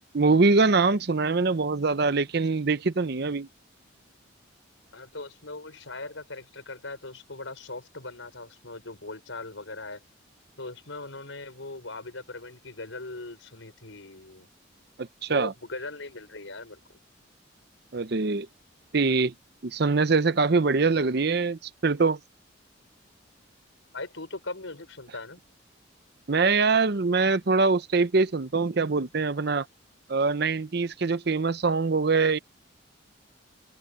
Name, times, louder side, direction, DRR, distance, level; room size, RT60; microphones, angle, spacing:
voice 1, 0.1-3.5 15.0-15.5 17.9-18.5 18.9-19.3 19.6-22.2 26.3-29.7 30.1-32.4, right 4 dB, 55° right, 0.7 m, -23 dB
voice 2, 4.9-10.0 10.6-14.5 15.3-16.8 23.9-25.4, left 2 dB, 75° left, 5.1 m, -40 dB
open air
head